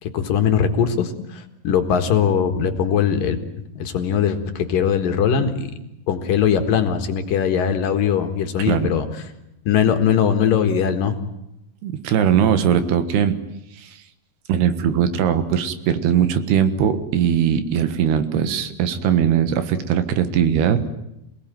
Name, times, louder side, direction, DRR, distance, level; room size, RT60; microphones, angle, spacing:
voice 1, 0.0-3.4 3.8-5.7 6.1-9.1 9.7-11.1, left 8 dB, 65° left, 6 dB, 3.1 m, -20 dB
voice 2, 11.8-13.4 13.7-14.0 14.5-20.9, right 8 dB, 80° right, 10 dB, 3.5 m, -20 dB
27.5 x 18.5 x 9.3 m, 0.86 s
omnidirectional pair, 4.6 m